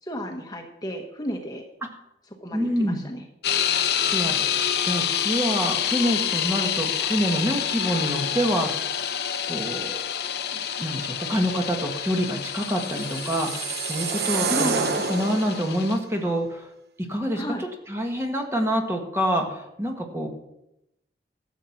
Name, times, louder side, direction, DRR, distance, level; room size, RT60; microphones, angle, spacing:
voice 1, 0.0-1.6 2.4-3.2 14.5-14.8 17.4-17.6, equal, 20° left, 3 dB, 1.1 m, -32 dB
voice 2, 2.5-3.0 4.0-9.2 9.5-10.0 10.5-16.7 17.0-20.3, equal, 15° right, 2 dB, 1.5 m, -27 dB
sound 1, 3.4-16.0, left 9 dB, 65° left, 0.8 m, -28 dB
sound 2, 12.6-15.8, right 5 dB, 65° right, 0.8 m, -28 dB
13.0 x 8.1 x 5.9 m, 0.85 s
head